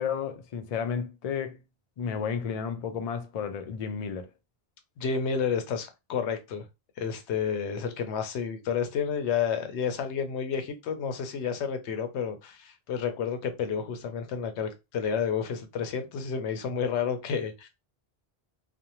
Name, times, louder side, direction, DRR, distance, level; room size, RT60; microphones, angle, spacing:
voice 1, 0.0-1.6 2.0-4.3, left 7 dB, 60° left, 0.4 m, -32 dB
voice 2, 5.0-6.6 7.0-17.7, left 6 dB, 90° left, 0.9 m, -30 dB
2.5 x 2.0 x 2.9 m
omnidirectional pair, 1.1 m